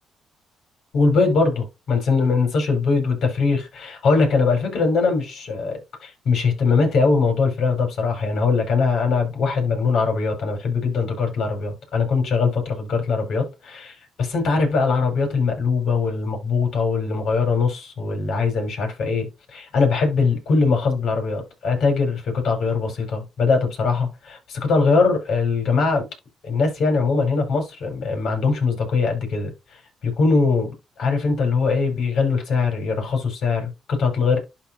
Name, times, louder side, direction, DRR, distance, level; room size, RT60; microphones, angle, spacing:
voice 1, 0.9-26.1 26.4-30.7 31.0-34.4, left 4 dB, 70° left, 4.7 m, -21 dB
12.0 x 4.7 x 2.7 m
cardioid pair, 90°, 0 cm